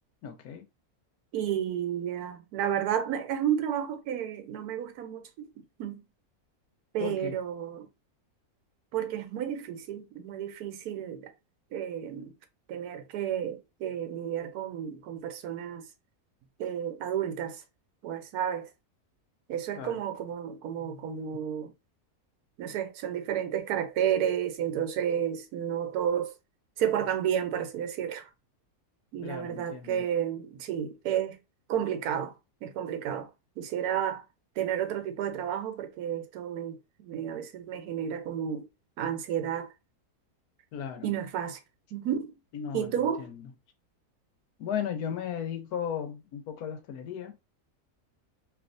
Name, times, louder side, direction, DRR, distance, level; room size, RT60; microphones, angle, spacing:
voice 1, 0.2-0.7 7.0-7.4 19.8-20.0 29.2-30.0 40.7-41.1 42.5-43.4 44.6-47.3, left 8 dB, 85° left, 1.3 m, -36 dB
voice 2, 1.3-5.5 5.8-6.0 6.9-7.9 8.9-11.3 11.7-12.3 12.7-15.9 16.6-17.6 18.0-18.7 19.5-21.7 22.6-26.3 26.8-28.3 29.1-31.4 31.7-33.3 33.6-34.3 34.6-38.7 39.0-39.7 41.0-41.6 41.9-42.3 42.7-43.3, right 9 dB, 85° right, 1.1 m, -31 dB
3.4 x 2.7 x 2.5 m
omnidirectional pair, 1.6 m